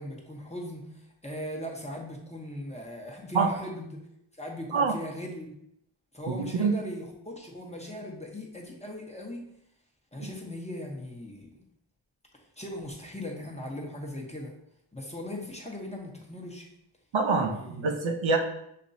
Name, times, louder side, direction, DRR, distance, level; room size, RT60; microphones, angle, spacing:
voice 1, 0.0-4.0 4.3-5.5 6.1-9.4 10.1-11.5 12.6-14.5 14.9-16.7 17.3-18.0, left 1 dB, 15° left, 0 dB, 0.8 m, -39 dB
voice 2, 6.3-6.8 10.2-10.3 17.1-18.4, right 4 dB, 70° right, 5 dB, 0.7 m, -26 dB
6.6 x 2.9 x 2.6 m, 0.75 s
wide cardioid pair, 70°, 49 cm